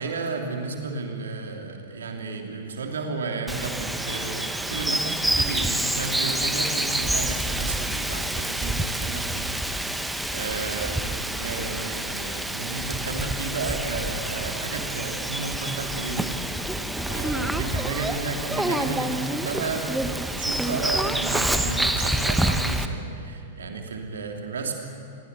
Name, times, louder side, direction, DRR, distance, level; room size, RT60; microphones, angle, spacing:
voice 1, 0.0-24.8, right 4 dB, 70° right, 2 dB, 3.1 m, -33 dB
Bird vocalization bird call bird song, 3.5-22.9, right 1 dB, 5° right, 1.2 m, -27 dB
27.0 x 22.5 x 6.9 m, 2.5 s
figure-of-eight pair, 100°, 0 cm